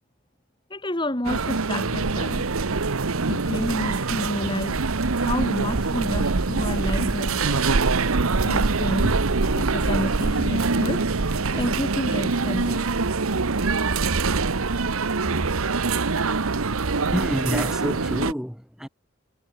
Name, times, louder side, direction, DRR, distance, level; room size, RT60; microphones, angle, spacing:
voice 1, 0.7-2.5 3.3-4.8 5.2-7.6 8.5-9.2 9.6-11.0 11.6-12.9, left 1 dB, 20° left, 2.1 m, -29 dB
sound 1, 1.2-18.3, right 3 dB, 90° right, 1.1 m, -24 dB
Speech, 7.2-12.4, left 2 dB, 50° left, 2.8 m, -46 dB
voice 2, 17.1-18.9, equal, 5° right, 2.5 m, -28 dB
head